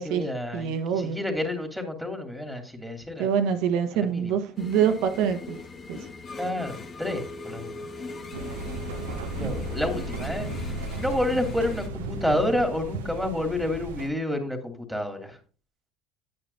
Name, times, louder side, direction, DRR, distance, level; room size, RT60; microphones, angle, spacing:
voice 1, 0.0-3.6 3.9-4.4 6.4-7.8 9.2-10.5 10.9-15.4, left 1 dB, ahead, 2.8 m, -29 dB
voice 2, 0.5-1.2 3.2-5.6 5.9-6.0, right 8 dB, 65° right, 1.3 m, -25 dB
sound 1, 4.6-11.9, left 4 dB, 40° left, 1.5 m, -39 dB
sound 2, 8.3-14.1, right 3 dB, 85° right, 0.9 m, -35 dB
9.6 x 9.0 x 2.7 m
hypercardioid pair, 70°, 0 cm